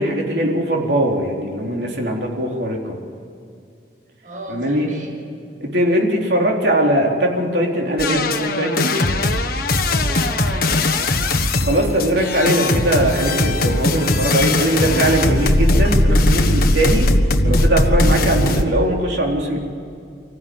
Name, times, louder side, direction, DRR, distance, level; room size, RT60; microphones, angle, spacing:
voice 1, 0.0-3.0 4.5-4.9 5.6-8.9 11.6-17.1 17.4-19.6, right 1 dB, 65° right, -1 dB, 3.9 m, -20 dB
voice 2, 4.2-5.1 9.8-11.3, right 1 dB, 45° right, -2 dB, 7.0 m, -35 dB
sound 1, 8.0-18.6, left 2 dB, 55° left, 1.4 m, -18 dB
25.0 x 15.5 x 9.7 m, 2.5 s
head